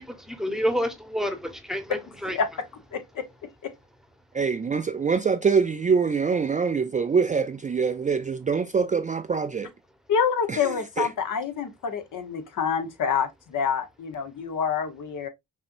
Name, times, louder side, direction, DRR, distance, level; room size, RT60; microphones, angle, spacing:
voice 1, 0.1-2.4, equal, ahead, 1.0 m, -29 dB
voice 2, 2.3-2.7 2.9-3.3 3.6-3.7 10.1-15.3, left 7 dB, 60° left, 1.0 m, -27 dB
voice 3, 4.3-9.7 10.5-11.1, right 5 dB, 20° right, 0.4 m, -24 dB
5.3 x 2.7 x 2.5 m
supercardioid pair, 65°, 36 cm